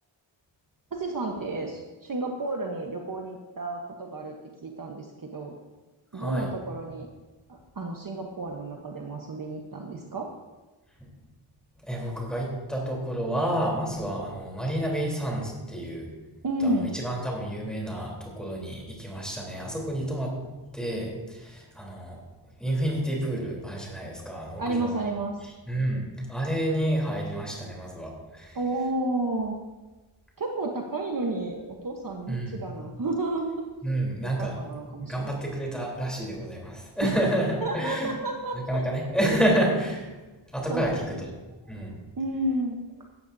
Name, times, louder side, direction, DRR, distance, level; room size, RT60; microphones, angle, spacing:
voice 1, 0.9-4.4 4.6-5.5 6.1-7.1 7.5-10.3 16.4-16.9 24.6-25.4 28.5-29.6 30.4-33.7 34.2-35.4 37.0-37.3 37.6-38.9 40.7-41.2 42.2-42.8, right 2 dB, 45° right, 1 dB, 1.1 m, -31 dB
voice 2, 6.1-6.5 11.0-11.1 11.8-16.1 16.6-20.3 20.7-22.2 22.6-25.1 25.7-28.6 32.3-32.6 33.8-34.5 35.0-38.1 38.5-40.1 40.5-41.3 41.7-42.0, right 1 dB, ahead, -2 dB, 3.6 m, -29 dB
16.0 x 13.0 x 2.7 m, 1.2 s
wide cardioid pair, 145°, 48 cm